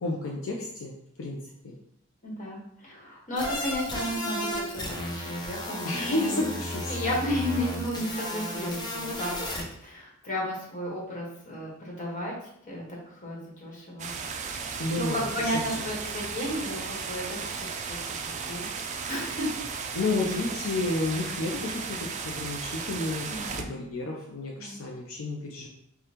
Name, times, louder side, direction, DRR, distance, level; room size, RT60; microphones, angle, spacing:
voice 1, 0.0-1.7 5.8-7.0 14.8-15.9 19.9-25.7, left 2 dB, 75° left, -1 dB, 0.5 m, -31 dB
voice 2, 2.2-6.5 6.9-12.3 12.7-14.1 14.9-18.6 19.1-19.5 23.2-23.7 24.6-24.8, left 1 dB, 40° left, -4 dB, 1.3 m, -33 dB
sound 1, 3.4-9.6, left 1 dB, 20° left, 0.6 m, -34 dB
sound 2, 14.0-23.6, right 5 dB, 35° right, 0.3 m, -35 dB
5.0 x 2.3 x 2.9 m, 0.74 s
head